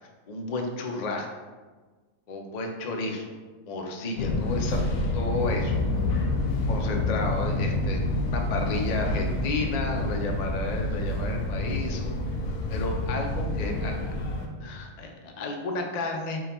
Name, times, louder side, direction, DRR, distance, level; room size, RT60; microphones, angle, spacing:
voice 1, 0.0-1.3 2.3-3.4 3.7-4.8 5.1-5.8 6.7-8.0 8.3-12.2 12.7-14.0 14.6-16.4, left 2 dB, 55° left, 2 dB, 0.4 m, -32 dB
Fixed-wing aircraft airplane, 4.2-14.5, left 2 dB, 80° left, 1.1 m, -28 dB
5.6 x 2.3 x 4.2 m, 1.3 s
omnidirectional pair, 1.4 m